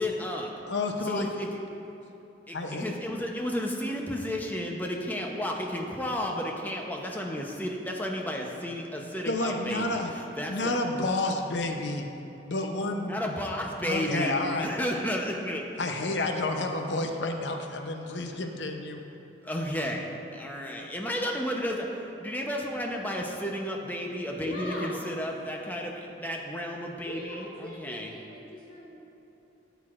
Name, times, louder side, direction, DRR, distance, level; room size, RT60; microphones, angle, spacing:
voice 1, 0.0-0.5 1.0-1.6 2.5-10.7 13.1-15.6 19.4-28.1, equal, 10° left, 0 dB, 0.7 m, -32 dB
voice 2, 0.7-1.3 2.5-2.9 9.3-10.1 10.5-12.1 12.5-13.2 13.9-14.7 15.8-19.0, left 2 dB, 80° left, 4 dB, 0.7 m, -30 dB
voice 3, 24.3-25.0 27.0-28.9, equal, 50° left, -4 dB, 2.0 m, -40 dB
13.0 x 8.0 x 2.5 m, 2.9 s
head